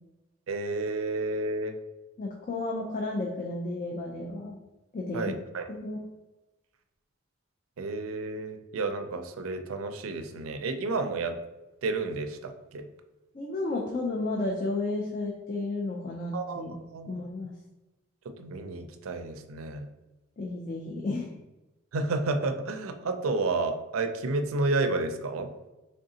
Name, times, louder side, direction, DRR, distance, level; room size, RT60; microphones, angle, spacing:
voice 1, 0.5-1.8 5.1-5.7 7.8-11.4 11.8-12.9 16.3-16.6 16.9-17.1 18.4-19.9 21.9-25.5, right 3 dB, 80° right, 7 dB, 0.4 m, -31 dB
voice 2, 2.2-4.6 4.9-5.3 5.7-6.1 13.3-16.7 17.1-17.5 20.4-21.3, left 2 dB, 40° left, -1 dB, 0.4 m, -32 dB
3.7 x 3.4 x 2.7 m, 1.0 s
head